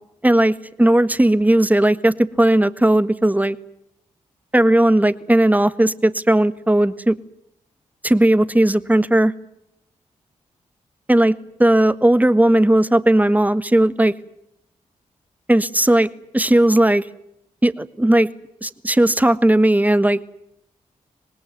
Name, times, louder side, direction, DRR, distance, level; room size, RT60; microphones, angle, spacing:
voice 1, 0.2-3.6 4.5-7.2 8.0-9.3 11.1-14.1 15.5-16.1 16.3-17.0 17.6-18.3 18.6-20.2, right 1 dB, 10° right, 13 dB, 1.6 m, -16 dB
25.5 x 19.5 x 9.3 m, 0.78 s
supercardioid pair, 50°, 14 cm